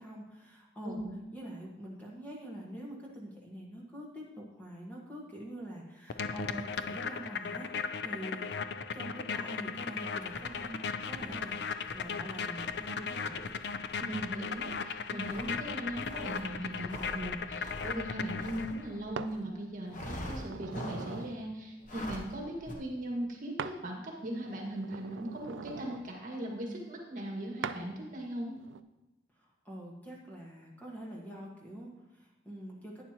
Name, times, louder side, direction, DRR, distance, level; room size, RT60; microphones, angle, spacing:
voice 1, 0.0-1.0 1.3-8.5 8.9-11.6 11.9-13.4 29.3-33.0, right 1 dB, 10° left, -4 dB, 1.5 m, -45 dB
voice 2, 0.8-1.2 14.0-28.5, right 1 dB, 45° right, 0 dB, 1.8 m, -39 dB
sound 1, 6.1-18.9, left 5 dB, 60° left, 0.4 m, -37 dB
sound 2, 10.2-19.4 19.9-21.3 21.8-22.3 22.6-22.7, equal, 45° left, 1.2 m, -46 dB
sound 3, 19.2-19.4 20.0-21.4 23.6-23.8 24.2-26.1 27.6-27.8 28.6-28.8, right 6 dB, 90° right, 0.4 m, -42 dB
11.5 x 9.4 x 2.9 m, 1.0 s
head